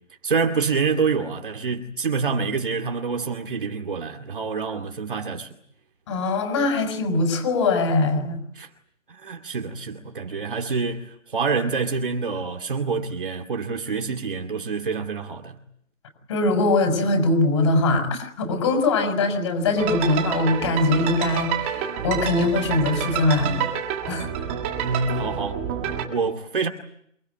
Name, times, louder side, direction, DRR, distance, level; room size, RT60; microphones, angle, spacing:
voice 1, 0.2-5.5 8.6-8.7 9.1-15.6 24.8-25.6 25.9-26.7, right 5 dB, 40° right, 2.4 m, -27 dB
voice 2, 6.1-8.4 16.3-23.6 24.1-24.3, left 2 dB, 25° left, 5.7 m, -22 dB
sound 1, 19.8-26.1, right 9 dB, 10° right, 1.7 m, -28 dB
28.5 x 20.5 x 9.4 m
hypercardioid pair, 175°, 39 cm